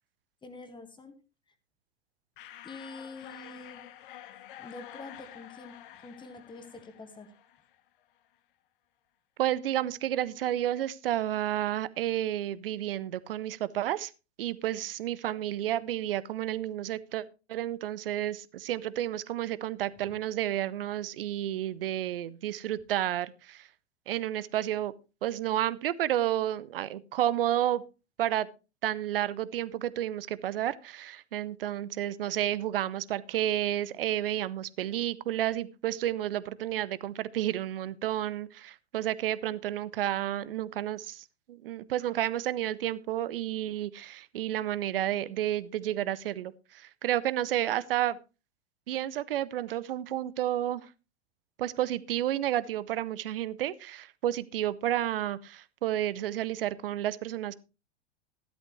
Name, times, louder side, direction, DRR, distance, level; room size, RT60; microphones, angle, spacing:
voice 1, 0.4-1.1 2.6-3.9 4.6-7.3, left 3 dB, 15° left, 8 dB, 1.7 m, -46 dB
sound 1, 2.4-7.9, left 12 dB, 50° left, 1.2 m, -49 dB
voice 2, 9.4-14.1 14.4-17.2 17.5-23.7 24.1-24.9 25.2-27.8 28.2-28.5 28.8-48.2 48.9-50.9 51.6-57.5, right 12 dB, 60° right, 18 dB, 0.8 m, -31 dB
13.5 x 12.0 x 3.1 m, 0.30 s
figure-of-eight pair, 90°, 32 cm